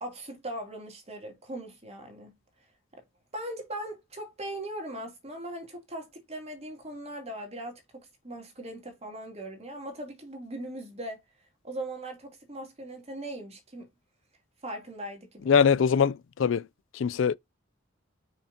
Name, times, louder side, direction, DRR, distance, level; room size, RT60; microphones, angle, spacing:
voice 1, 0.0-2.3 2.9-3.0 3.3-11.2 11.6-13.9 14.6-15.5, right 1 dB, 35° right, 3.0 m, -39 dB
voice 2, 15.5-16.7 16.9-17.3, left 6 dB, 70° left, 0.4 m, -22 dB
6.8 x 5.9 x 2.8 m
head